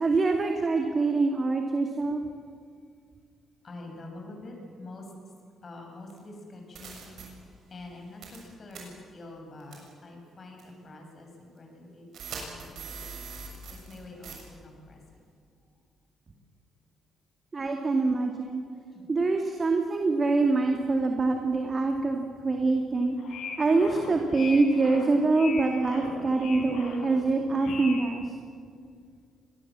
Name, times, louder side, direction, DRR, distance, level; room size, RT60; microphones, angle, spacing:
voice 1, 0.0-2.2 17.5-18.6 19.1-23.2 23.6-28.3, right 3 dB, 35° right, 3 dB, 2.2 m, -25 dB
voice 2, 3.6-5.1 5.6-7.1 7.7-12.1 12.4-13.0 13.3-13.4 13.7-14.4 14.6-15.2 18.9-19.1, left 2 dB, 40° left, 2 dB, 7.2 m, -46 dB
sound 1, 6.1-6.2 6.7-7.2 8.2-8.4 8.7-8.8 9.7-9.9 10.6-10.7 12.1-14.0 14.2-14.4, right 5 dB, 70° right, 6.9 m, -41 dB
sound 2, 23.1-28.2, left 4 dB, 75° left, 4.6 m, -40 dB
24.5 x 19.5 x 7.5 m, 2.2 s
cardioid pair, 90°, 0 cm